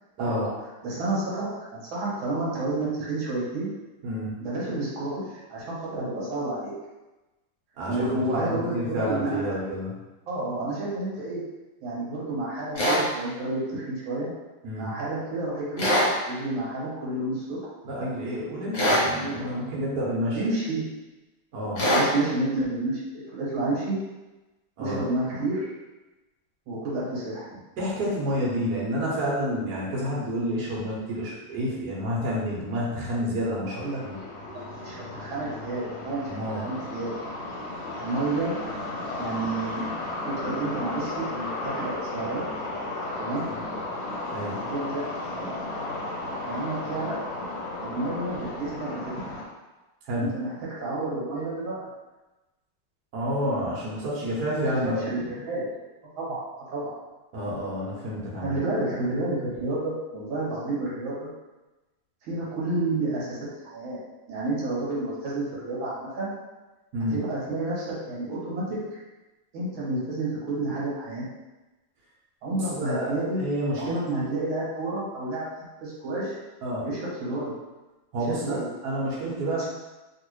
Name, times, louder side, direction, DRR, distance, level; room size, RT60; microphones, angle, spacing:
voice 1, 0.2-0.5 4.0-4.4 7.8-9.9 14.6-14.9 17.8-20.4 21.5-21.9 24.8-25.0 27.8-34.2 36.3-36.7 43.5-43.6 44.3-44.6 50.0-50.4 53.1-55.3 57.3-58.6 66.9-67.2 72.6-74.0 76.6-76.9 78.1-79.7, equal, 60° right, -6 dB, 1.3 m, -29 dB
voice 2, 0.8-3.7 4.4-6.7 7.9-9.6 10.3-11.4 11.8-14.3 14.7-15.9 16.3-17.6 19.2-19.7 20.3-20.9 21.8-24.0 24.8-25.7 26.7-27.6 33.7-34.0 34.8-36.4 36.6-37.1 38.0-38.5 39.2-39.9 40.2-42.4 43.2-43.5 44.7-45.0 45.3-45.6 46.5-47.2 47.8-49.1 50.2-51.9 54.5-55.7 56.2-56.4 56.7-56.9 58.4-61.3 62.2-63.4 63.7-64.0 64.3-66.3 67.1-69.0 69.5-71.2 72.4-73.5 73.8-75.5 75.8-76.4 76.8-77.5 78.3-78.7, right 2 dB, 75° right, -6 dB, 1.8 m, -30 dB
sound 1, 12.7-13.0 15.8-16.1 18.7-19.1 21.8-22.1, equal, 45° left, 1.1 m, -22 dB
sound 2, 33.8-49.5, left 2 dB, 70° left, 1.3 m, -34 dB
3.1 x 3.0 x 3.0 m, 1.1 s
omnidirectional pair, 2.3 m